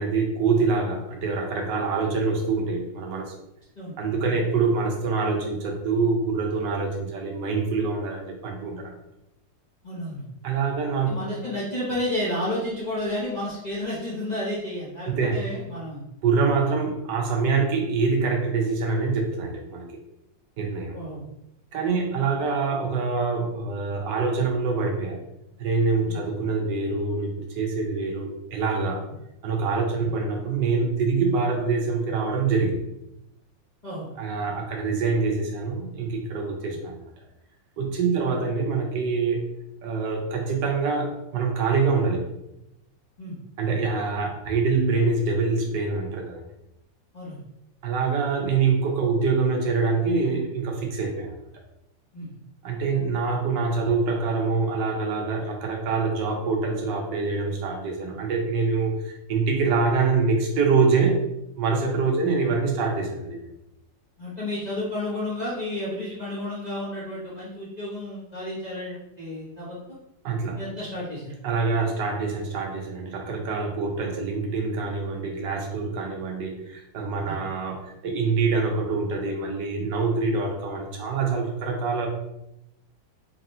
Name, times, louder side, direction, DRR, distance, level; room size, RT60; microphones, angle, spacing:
voice 1, 0.0-3.3 4.0-8.9 10.4-11.1 15.1-15.3 16.2-19.9 20.6-21.0 21.7-25.2 25.6-29.1 29.4-32.9 34.2-37.1 37.8-39.4 39.8-42.3 43.6-46.4 47.8-51.4 52.6-61.2 61.6-63.5 70.2-70.6 71.4-82.1, right 4 dB, 75° right, 2 dB, 1.3 m, -25 dB
voice 2, 9.8-10.2 11.0-16.0 20.9-21.2 26.0-26.2 30.0-30.1 33.8-34.1 36.7-36.8 38.0-38.2 43.2-43.4 47.1-47.4 52.1-52.3 62.2-62.3 64.2-69.8 70.6-71.3 77.2-77.4, left 1 dB, 35° left, -8 dB, 0.8 m, -31 dB
4.1 x 3.0 x 2.6 m, 0.85 s
omnidirectional pair, 2.0 m